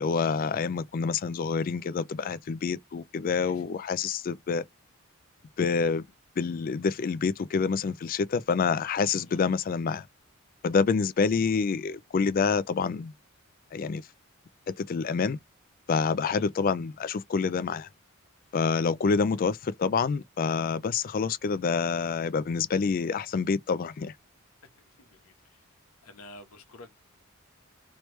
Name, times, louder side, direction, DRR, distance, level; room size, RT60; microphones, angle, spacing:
voice 1, 0.0-4.6 5.6-6.0 6.4-10.1 10.6-13.1 13.7-14.0 14.7-15.4 15.9-17.9 18.5-24.1, left 5 dB, 40° left, 0.3 m, -27 dB
voice 2, 24.8-25.6 26.0-27.0, left 2 dB, 85° left, 1.1 m, -51 dB
3.2 x 3.1 x 3.1 m
head